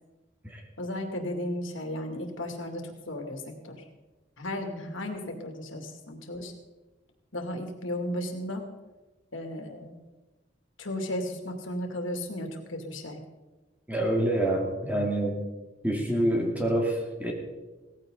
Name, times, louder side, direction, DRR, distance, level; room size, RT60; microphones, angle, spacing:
voice 1, 0.8-3.9 4.4-6.5 7.3-8.7 9.3-10.0 10.8-13.2, left 1 dB, 90° left, 3 dB, 2.5 m, -35 dB
voice 2, 13.9-15.4 15.8-17.3, right 1 dB, 10° right, 0 dB, 2.4 m, -26 dB
17.5 x 15.5 x 3.9 m, 1.2 s
head